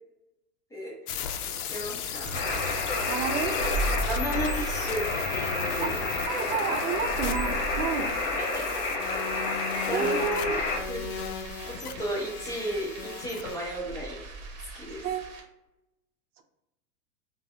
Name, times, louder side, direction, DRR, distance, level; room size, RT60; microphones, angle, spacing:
sound 1, 1.1-13.6, left 7 dB, 75° left, 0.5 m, -37 dB
voice 1, 1.7-2.4 4.0-6.0 8.4-8.9 9.9-10.5 10.9-11.0 11.6-14.2 14.7-15.0, equal, 5° left, -4 dB, 0.6 m, -34 dB
sound 2, 2.2-15.4, right 2 dB, 45° right, 0.9 m, -37 dB
sound 3, 2.3-10.8, left 3 dB, 50° left, 1.0 m, -30 dB
voice 2, 3.1-3.6 5.8-8.2 9.9-10.5 15.0-15.3 16.4-16.5, right 5 dB, 65° right, 6 dB, 0.6 m, -31 dB
3.2 x 2.1 x 2.6 m, 0.91 s
hypercardioid pair, 110°, 47 cm